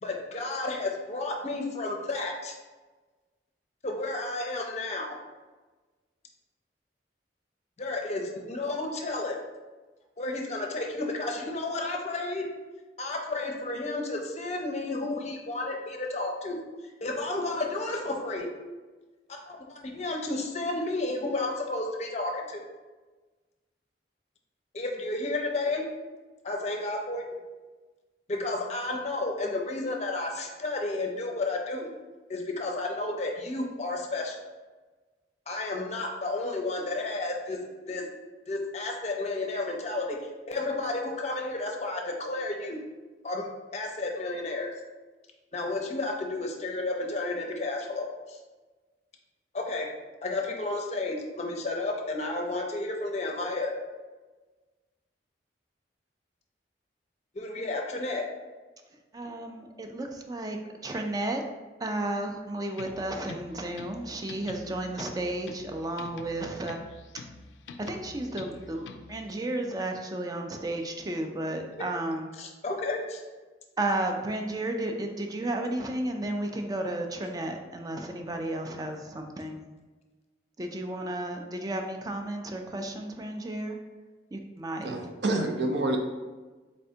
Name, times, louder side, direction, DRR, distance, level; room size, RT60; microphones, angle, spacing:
voice 1, 0.0-2.6 3.8-5.2 7.8-9.4 10.2-12.4 13.0-16.6 17.0-18.5 19.5-22.6 24.7-25.8 26.4-27.2 28.3-31.9 32.3-34.4 35.5-37.6 37.9-38.0 38.5-40.2 40.5-42.8 43.2-44.7 45.5-48.4 49.5-49.9 50.2-53.7 57.3-58.2 72.4-73.2, left 2 dB, 40° left, 2 dB, 0.5 m, -32 dB
voice 2, 59.1-61.4 61.8-66.8 67.8-72.3 73.8-79.7 80.6-83.8 84.3-85.1, right 1 dB, 20° right, 4 dB, 0.4 m, -33 dB
sound 1, 62.7-69.3, left 4 dB, 90° left, 0.4 m, -46 dB
voice 3, 84.8-86.0, right 2 dB, 70° right, 4 dB, 0.5 m, -27 dB
4.2 x 3.3 x 2.7 m, 1.3 s
head